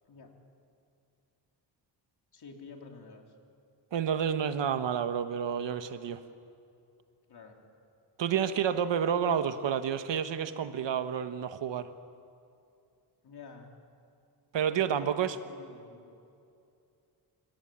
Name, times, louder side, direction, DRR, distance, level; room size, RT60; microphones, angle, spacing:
voice 1, 2.3-3.3 7.3-7.6 13.2-13.7 14.6-16.2, left 4 dB, 60° left, 2 dB, 3.5 m, -50 dB
voice 2, 3.9-6.2 8.2-11.9 14.5-15.4, right 8 dB, 75° right, 10 dB, 1.4 m, -29 dB
29.0 x 17.5 x 8.8 m, 2.6 s
cardioid pair, 90°, 44 cm